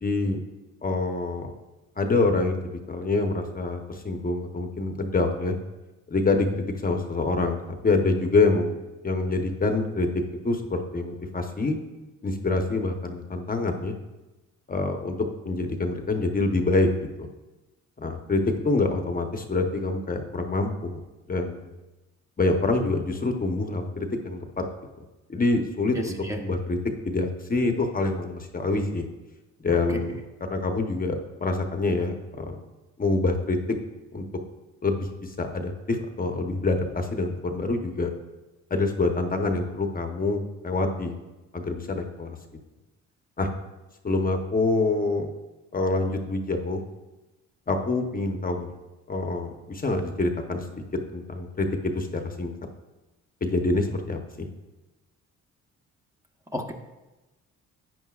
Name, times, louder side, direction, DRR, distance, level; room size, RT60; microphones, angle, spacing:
voice 1, 0.0-0.4 0.8-1.5 2.0-5.6 6.1-8.8 9.0-10.1 10.4-11.8 12.2-13.9 14.7-15.2 15.4-16.9 17.2-17.3 18.0-21.0 21.3-21.7 22.4-24.6 25.3-26.8 27.0-29.0 29.6-30.1 30.5-32.6 33.0-33.6 34.1-34.2 34.8-38.1 38.7-41.2 41.5-42.4 43.4-43.5 44.0-45.3 45.7-46.8 47.7-48.7 49.1-50.8 51.1-52.5 53.4-54.5, left 3 dB, 30° left, 4 dB, 1.0 m, -26 dB
voice 2, 25.9-26.4 29.9-30.0 56.5-56.7, equal, 10° right, 2 dB, 1.0 m, -31 dB
11.0 x 9.1 x 2.4 m, 1.1 s
cardioid pair, 90°, 30 cm